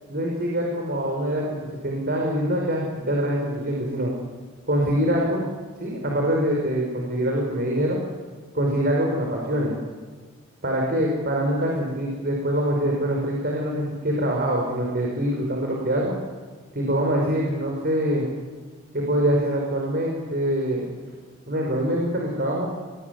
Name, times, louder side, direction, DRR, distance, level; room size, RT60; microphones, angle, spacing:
voice 1, 0.1-1.5 1.8-4.1 4.7-5.4 5.8-8.0 8.5-9.8 10.6-16.2 16.7-18.3 18.9-20.9 21.5-22.7, equal, 50° right, -1 dB, 5.3 m, -24 dB
27.0 x 19.5 x 9.5 m, 1.5 s
head